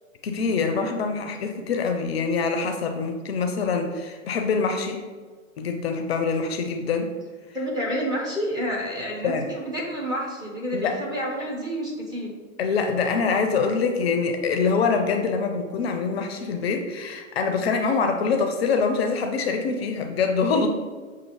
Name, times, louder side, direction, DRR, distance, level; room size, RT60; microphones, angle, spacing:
voice 1, 0.2-5.0 5.6-7.1 9.2-9.5 10.7-11.0 12.6-20.7, left 5 dB, 50° left, 5 dB, 0.5 m, -24 dB
voice 2, 7.5-12.3, equal, 10° right, -3 dB, 0.6 m, -29 dB
6.5 x 2.5 x 2.9 m, 1.5 s
figure-of-eight pair, 105°, 41 cm